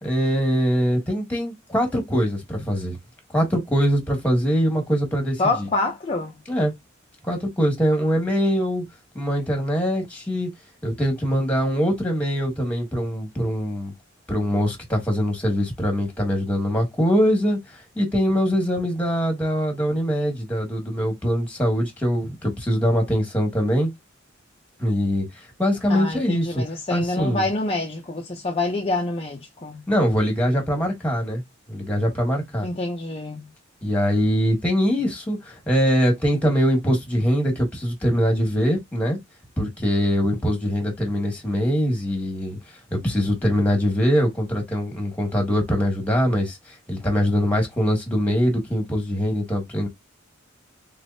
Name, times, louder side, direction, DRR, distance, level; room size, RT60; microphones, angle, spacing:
voice 1, 0.0-3.0 3.3-5.7 6.5-6.7 7.2-8.8 9.1-10.5 10.8-13.9 14.3-23.9 24.8-25.3 25.6-26.6 26.9-27.4 29.9-31.4 31.7-32.7 33.8-39.2 39.6-42.6 42.9-46.6 46.9-49.9, equal, 5° left, 1.7 m, -22 dB
voice 2, 5.4-6.4 25.9-29.8 32.6-33.5, left 2 dB, 30° left, 0.7 m, -26 dB
3.8 x 3.5 x 2.7 m
head